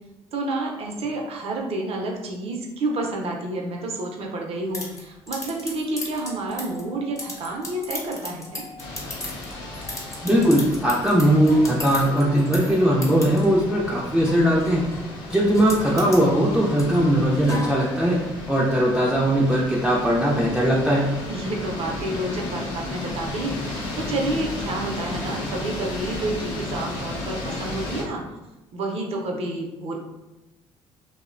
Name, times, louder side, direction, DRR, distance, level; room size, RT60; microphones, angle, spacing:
voice 1, 0.3-8.6 17.4-17.7 21.3-23.6 23.9-28.2 28.7-30.0, right 2 dB, 55° right, 0 dB, 0.5 m, -29 dB
sound 1, 4.7-18.3, left 1 dB, 25° left, 0.7 m, -37 dB
sound 2, 8.8-28.0, left 2 dB, 90° left, 0.6 m, -34 dB
voice 2, 10.2-14.9 15.3-18.2 18.5-21.1, equal, 5° right, -5 dB, 0.4 m, -19 dB
2.6 x 2.0 x 2.5 m, 1.0 s
supercardioid pair, 65°, 12 cm